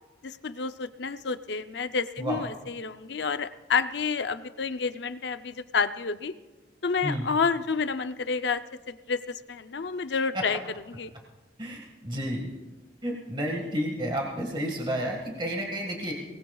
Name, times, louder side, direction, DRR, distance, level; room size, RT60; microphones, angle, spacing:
voice 1, 0.2-6.3 6.8-10.6 10.9-11.1, left 5 dB, 70° left, 11 dB, 0.6 m, -29 dB
voice 2, 11.6-12.5 13.0-16.1, equal, 25° right, 0 dB, 1.7 m, -31 dB
23.0 x 19.0 x 2.4 m, 1.2 s
head